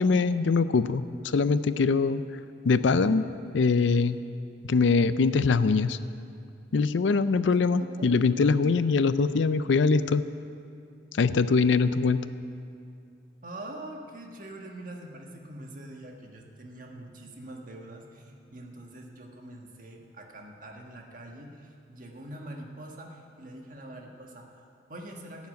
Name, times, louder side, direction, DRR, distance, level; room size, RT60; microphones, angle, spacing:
voice 1, 0.0-2.2 2.6-3.2 3.5-4.2 4.6-6.0 6.7-10.2 11.1-12.2, left 4 dB, 70° left, 13 dB, 0.4 m, -23 dB
voice 2, 13.4-25.5, right 1 dB, 45° right, 1 dB, 1.5 m, -44 dB
14.5 x 7.2 x 9.2 m, 2.4 s
head